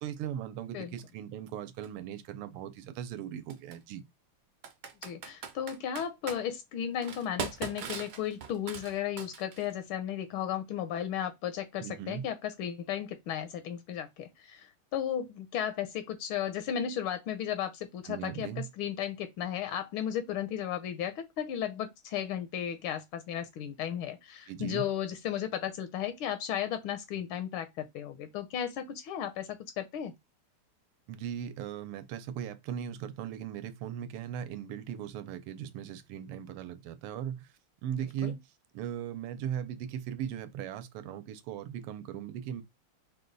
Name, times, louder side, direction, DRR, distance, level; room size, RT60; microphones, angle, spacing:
voice 1, 0.0-4.0 11.8-12.2 18.0-18.6 24.5-24.8 31.1-37.5 37.8-42.6, right 9 dB, 85° right, 1.6 m, -38 dB
Computer keyboard, 1.8-1.9 3.5-3.8 4.6-6.4 7.0-9.7, right 6 dB, 65° right, 1.0 m, -40 dB
voice 2, 5.0-18.5 18.8-30.1 38.2-38.4, left 10 dB, 75° left, 1.3 m, -35 dB
4.9 x 2.3 x 3.9 m
omnidirectional pair, 2.4 m